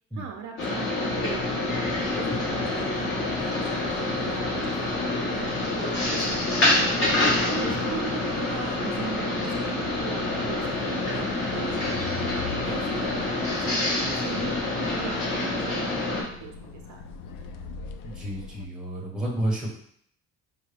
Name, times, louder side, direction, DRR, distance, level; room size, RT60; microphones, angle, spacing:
voice 1, 0.1-12.0 12.5-17.0, right 7 dB, 65° right, 2 dB, 0.7 m, -40 dB
sound 1, 0.6-16.2, left 2 dB, 35° left, 1.4 m, -27 dB
sound 2, 1.1-18.7, left 5 dB, 85° left, 0.5 m, -42 dB
voice 2, 18.0-19.7, right 1 dB, 5° right, -3 dB, 1.0 m, -30 dB
5.2 x 2.2 x 3.3 m, 0.63 s
cardioid pair, 140°, 31 cm